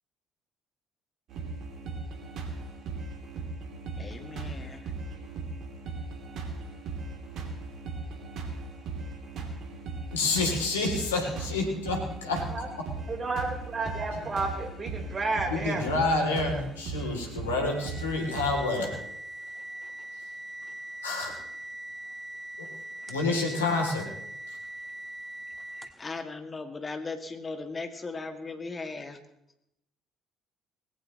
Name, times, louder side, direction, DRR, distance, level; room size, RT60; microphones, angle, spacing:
sound 1, 1.3-18.5, right 3 dB, 55° right, 2.9 m, -38 dB
voice 1, 4.0-4.8 26.0-29.2, left 3 dB, 30° left, 6 dB, 2.2 m, -37 dB
voice 2, 10.1-12.5 15.5-18.9 21.0-21.4 22.6-22.7 23.1-24.1, left 3 dB, 80° left, 1 dB, 3.0 m, -28 dB
voice 3, 13.1-15.9, right 3 dB, 35° right, 3 dB, 4.1 m, -31 dB
sound 2, 17.6-26.1, right 1 dB, 10° right, 1.5 m, -41 dB
20.0 x 17.0 x 3.1 m, 0.82 s
figure-of-eight pair, 50°, 0 cm